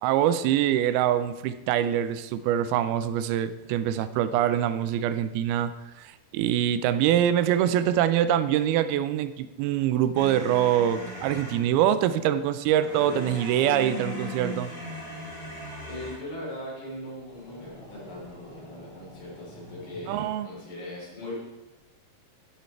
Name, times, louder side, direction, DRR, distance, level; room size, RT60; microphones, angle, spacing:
voice 1, 0.0-5.7 6.0-14.7 20.0-20.5, right 11 dB, 85° right, 13 dB, 2.5 m, -24 dB
sound 1, 10.1-11.7 12.8-16.3 17.2-20.2, left 1 dB, 50° left, 5.1 m, -39 dB
voice 2, 15.9-21.4, left 1 dB, 75° left, -6 dB, 5.7 m, -39 dB
15.5 x 5.4 x 4.5 m, 1.1 s
omnidirectional pair, 4.4 m